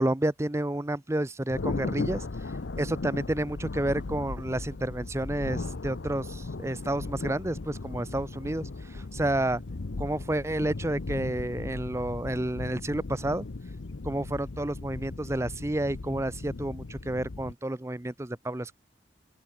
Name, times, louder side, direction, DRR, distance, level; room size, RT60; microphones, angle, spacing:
voice 1, 0.0-2.2 2.8-9.6 10.0-13.5 14.0-18.7, right 1 dB, 15° right, 0.6 m, -30 dB
Thunder, 1.5-17.5, left 3 dB, 75° left, 0.7 m, -37 dB
open air
head